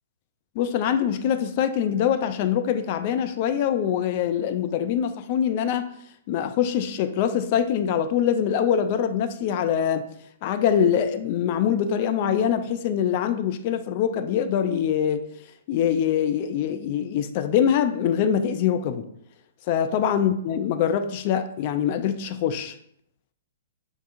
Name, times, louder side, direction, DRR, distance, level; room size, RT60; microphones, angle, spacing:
voice 1, 0.6-5.9 6.3-10.1 10.4-15.2 15.7-19.0 19.7-22.7, left 8 dB, 40° left, 9 dB, 0.3 m, -24 dB
5.5 x 3.5 x 2.5 m, 0.70 s
figure-of-eight pair, 115°, 0 cm